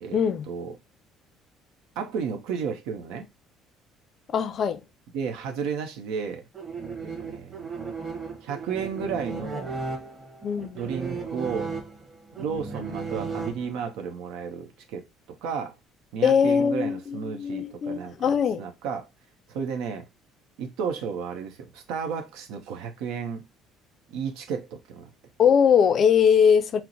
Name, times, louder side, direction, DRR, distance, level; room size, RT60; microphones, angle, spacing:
voice 1, 0.1-0.5 4.3-4.8 10.4-10.8 16.2-18.6 25.4-26.8, left 7 dB, 40° left, 0.4 m, -21 dB
voice 2, 2.0-3.3 5.1-6.4 7.0-7.7 8.4-9.8 10.7-11.7 12.4-15.0 15.4-15.7 16.1-18.3 18.6-19.1 19.5-20.1 20.6-23.4 24.1-25.1, right 6 dB, 85° right, 0.8 m, -32 dB
sound 1, 6.5-14.0, right 4 dB, 20° right, 1.0 m, -35 dB
4.4 x 2.0 x 3.9 m
cardioid pair, 150°, 0 cm